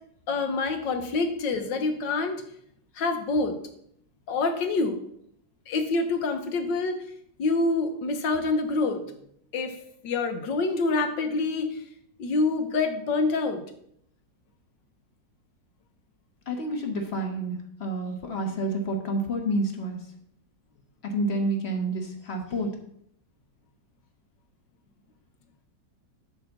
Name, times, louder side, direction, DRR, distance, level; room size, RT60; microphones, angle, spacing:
voice 1, 0.3-2.4 2.9-3.6 4.3-5.0 5.7-7.0 7.4-9.0 9.5-9.8 10.0-11.8 12.2-13.6, left 3 dB, 75° left, 6 dB, 1.7 m, -26 dB
voice 2, 16.5-20.0 21.0-22.7, right 1 dB, 35° left, 4 dB, 1.5 m, -29 dB
9.2 x 4.1 x 7.1 m, 0.69 s
omnidirectional pair, 2.0 m